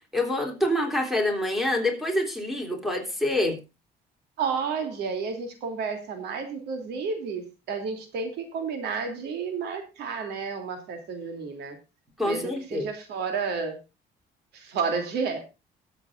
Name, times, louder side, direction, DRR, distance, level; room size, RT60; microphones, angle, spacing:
voice 1, 0.1-3.6 12.2-12.9, left 1 dB, ahead, 4 dB, 3.4 m, -26 dB
voice 2, 4.4-11.8 12.2-13.8 14.5-15.4, right 5 dB, 75° right, 6 dB, 3.0 m, -31 dB
21.5 x 8.1 x 2.6 m, 0.27 s
cardioid pair, 110°, 17 cm